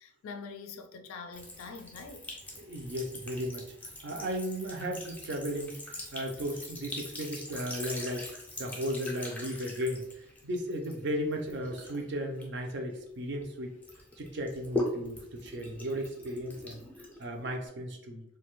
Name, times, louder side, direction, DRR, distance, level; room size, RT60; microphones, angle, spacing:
voice 1, 0.0-2.4, left 4 dB, 80° left, 0.3 m, -44 dB
Sink (filling or washing) / Trickle dribble, 1.3-13.4 13.8-17.7, left 1 dB, 5° left, 0.4 m, -42 dB
voice 2, 2.6-3.7 4.0-13.7 14.2-16.8 17.2-18.2, equal, 50° right, 0.5 m, -35 dB
2.6 x 2.2 x 3.0 m
head